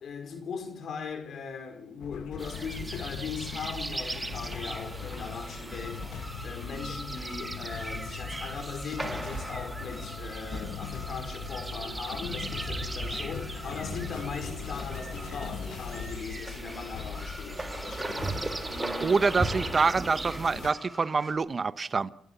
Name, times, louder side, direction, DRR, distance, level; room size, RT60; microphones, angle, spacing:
voice 1, 0.0-6.2 6.4-19.4, left 5 dB, 60° left, 5.4 m, -39 dB
sound 1, 2.0-20.7, left 9 dB, 80° left, 1.3 m, -41 dB
sound 2, 2.4-20.7, right 2 dB, 20° right, 1.8 m, -38 dB
sound 3, 3.3-21.3, equal, ahead, 6.2 m, -46 dB
voice 2, 19.0-22.1, right 4 dB, 35° right, 1.0 m, -26 dB
28.5 x 13.5 x 7.2 m
cardioid pair, 90°, 0 cm